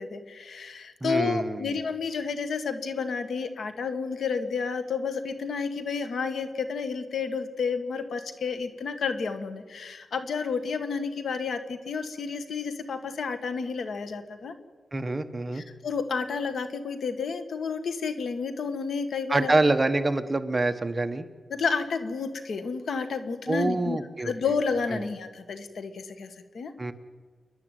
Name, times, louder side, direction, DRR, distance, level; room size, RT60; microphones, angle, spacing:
voice 1, 0.0-14.5 15.5-19.5 21.5-24.0 24.2-26.3 26.5-26.7, left 5 dB, 80° left, 9 dB, 1.8 m, -31 dB
voice 2, 1.0-1.8 14.9-15.6 19.3-21.3 23.5-24.3 24.9-25.0 26.8-26.9, right 2 dB, 25° right, 8 dB, 1.3 m, -26 dB
29.5 x 11.5 x 9.3 m, 1.5 s
wide cardioid pair, 115°, 0 cm